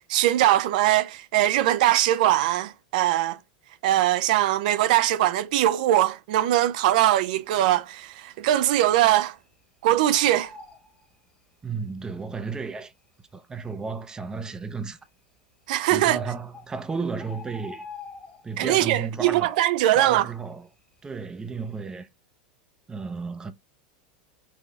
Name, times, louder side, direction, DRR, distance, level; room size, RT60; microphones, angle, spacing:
voice 1, 0.1-3.4 3.8-9.3 9.8-10.5 15.7-16.2 18.6-20.3, right 14 dB, 65° right, 0.5 m, -21 dB
Bird, 7.1-7.7 8.0-8.1 8.4-9.6 9.9-11.7 12.5-12.6 13.3-13.4 13.6-13.7 14.3-14.8 15.7-15.8 16.2-16.3 16.5-18.8 19.1-19.5 19.8-21.2 21.5-21.7, left 3 dB, 20° left, 1.4 m, -45 dB
voice 2, 11.6-12.9 13.3-15.0 15.9-17.8 18.4-19.6 19.9-20.7 21.0-22.1 22.9-23.5, right 4 dB, 15° right, 0.6 m, -33 dB
4.8 x 2.7 x 3.3 m
hypercardioid pair, 110°, 5 cm